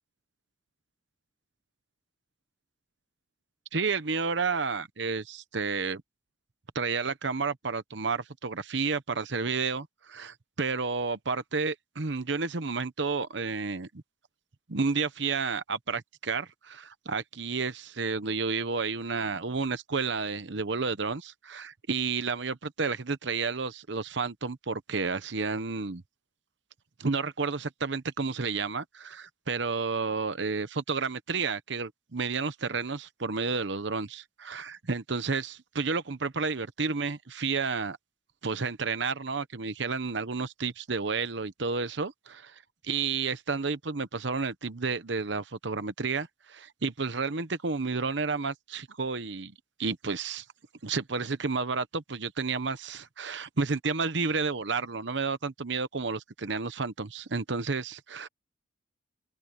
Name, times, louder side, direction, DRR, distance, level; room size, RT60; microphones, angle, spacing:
voice 1, 3.7-6.0 6.7-14.0 14.7-26.0 27.0-38.0 38.4-49.5 49.8-50.4 50.8-58.3, right 4 dB, 65° right, 0.9 m, -31 dB
open air
head